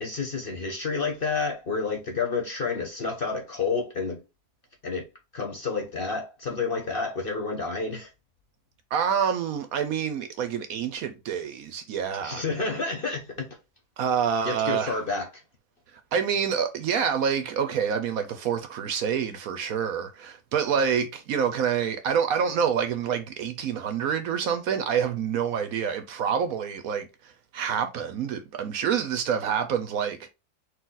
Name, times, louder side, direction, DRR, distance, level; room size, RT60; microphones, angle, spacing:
voice 1, 0.0-4.2 4.8-5.1 5.3-8.1 12.2-13.6 14.5-15.3, left 4 dB, 45° left, 0.8 m, -29 dB
voice 2, 8.9-12.4 14.0-15.0 16.1-30.3, right 7 dB, 65° right, 1.0 m, -27 dB
4.2 x 2.8 x 3.9 m
omnidirectional pair, 1.7 m